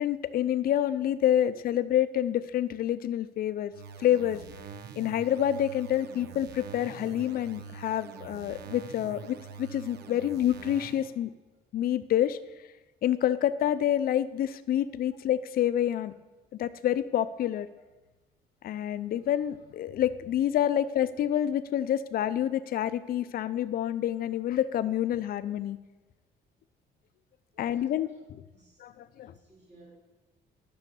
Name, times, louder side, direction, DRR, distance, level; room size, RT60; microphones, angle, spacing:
voice 1, 0.0-3.7 4.0-4.4 5.0-11.3 11.7-12.4 13.0-16.1 16.6-17.7 18.6-25.8 27.6-28.1 28.8-29.3, left 11 dB, 55° left, 13 dB, 0.6 m, -28 dB
sound 1, 3.7-11.1, right 6 dB, 70° right, 0.9 m, -45 dB
voice 2, 27.5-28.2 28.5-28.8 29.2-30.0, right 2 dB, 40° right, -4 dB, 4.1 m, -58 dB
10.5 x 6.4 x 7.7 m, 1.2 s
cardioid pair, 140°, 18 cm